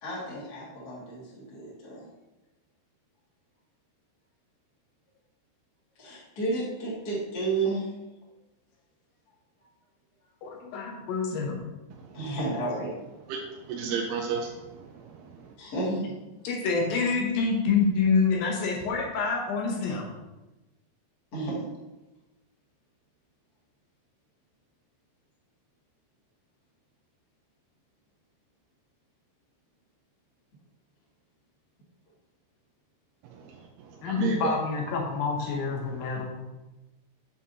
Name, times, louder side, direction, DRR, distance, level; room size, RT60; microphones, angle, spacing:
voice 1, 0.0-2.1 6.0-7.9 12.1-12.9 15.6-16.2 21.3-21.7, right 2 dB, 30° left, -8 dB, 2.1 m, -32 dB
voice 2, 10.4-11.6 16.4-20.1 34.0-36.5, left 4 dB, 75° left, 0 dB, 2.4 m, -27 dB
voice 3, 13.7-15.5 33.3-33.5 34.1-34.5, right 5 dB, 80° right, 0 dB, 2.6 m, -32 dB
7.5 x 6.9 x 2.8 m, 1.0 s
omnidirectional pair, 4.7 m